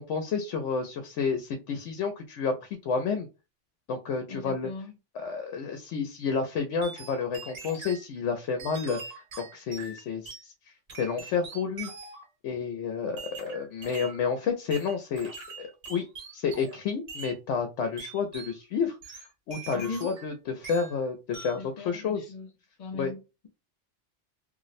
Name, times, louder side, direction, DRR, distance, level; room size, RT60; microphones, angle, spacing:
voice 1, 0.0-3.3 3.9-4.7 5.1-9.0 9.4-10.5 11.0-11.9 12.4-15.3 15.6-16.1 16.3-22.3 22.9-23.1, left 5 dB, 80° left, 0.9 m, -30 dB
voice 2, 4.3-4.9 19.7-20.2 21.5-22.5 22.8-23.5, left 4 dB, 50° left, 0.5 m, -39 dB
sound 1, 6.8-8.1 8.6-10.5 10.9-12.3 13.2-14.2 14.7-16.8 17.1-17.4 18.0-18.6 19.0-20.3 20.6-21.0 21.3-21.7, right 4 dB, 50° right, 0.9 m, -43 dB
2.6 x 2.1 x 3.9 m
omnidirectional pair, 1.2 m